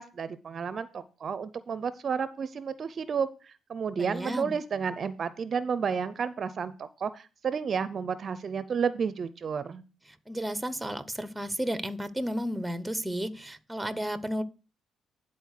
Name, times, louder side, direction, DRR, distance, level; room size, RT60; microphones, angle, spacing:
voice 1, 0.0-9.8, right 6 dB, 50° right, 0.6 m, -31 dB
voice 2, 4.0-4.5 10.3-14.4, equal, 5° right, 0.9 m, -33 dB
10.0 x 4.3 x 6.5 m
cardioid pair, 90°, 0 cm